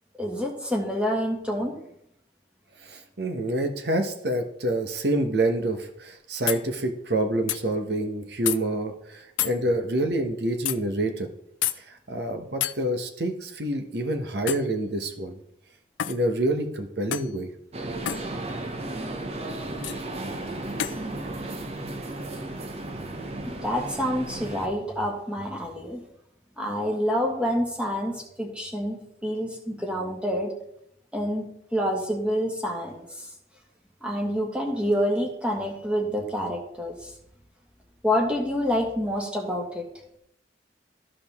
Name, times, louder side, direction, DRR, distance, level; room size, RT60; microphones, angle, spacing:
voice 1, 0.2-1.8 18.5-18.6 23.6-26.0 26.6-29.0 29.2-30.5 31.1-33.3 34.0-37.1 38.0-39.8, equal, 5° right, 1 dB, 1.6 m, -27 dB
voice 2, 2.8-11.3 11.8-15.4 16.0-17.5, right 1 dB, 60° right, 5 dB, 1.1 m, -27 dB
sound 1, 6.5-6.6 7.5-7.6 8.5-8.6 9.4-9.6 10.7-10.8 11.6-11.8 12.6-12.8 14.5-14.7 16.0-16.2 17.1-17.3 18.1-18.2 19.8-20.0 20.8-21.0, left 12 dB, 85° left, 0.4 m, -28 dB
sound 2, 17.7-24.7, right 2 dB, 35° right, 0.8 m, -34 dB
13.5 x 5.0 x 3.6 m, 0.75 s
head